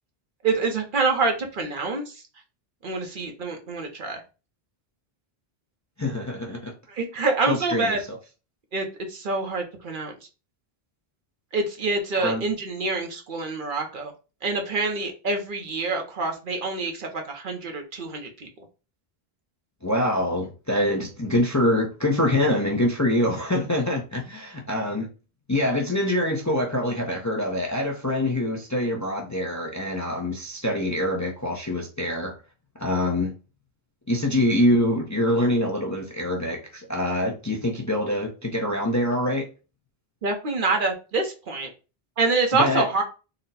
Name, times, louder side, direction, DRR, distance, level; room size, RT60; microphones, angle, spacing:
voice 1, 0.4-2.1 2.8-4.2 6.9-8.0 8.7-10.1 11.5-14.1 14.4-18.5 40.2-41.7 42.2-43.0, right 3 dB, 55° right, 0.9 m, -26 dB
voice 2, 6.0-6.7 7.5-8.2 12.2-12.5 19.8-25.1 25.5-32.3 32.8-33.3 34.1-39.5 42.5-42.9, left 1 dB, 20° left, 0.5 m, -25 dB
4.0 x 2.1 x 4.0 m
omnidirectional pair, 1.0 m